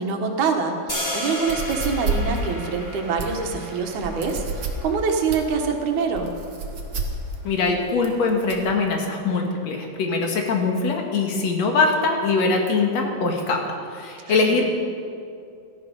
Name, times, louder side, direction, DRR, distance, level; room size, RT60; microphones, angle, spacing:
voice 1, 0.0-6.3 14.3-14.6, right 5 dB, 80° right, 4 dB, 2.8 m, -25 dB
sound 1, 0.9-7.0, left 1 dB, 5° left, 4.0 m, -34 dB
sound 2, 1.4-8.7, right 3 dB, 45° right, 1.7 m, -30 dB
voice 2, 7.4-13.6 13.9-14.6, left 4 dB, 65° left, 2 dB, 2.8 m, -22 dB
17.5 x 13.0 x 5.4 m, 2.4 s
omnidirectional pair, 3.4 m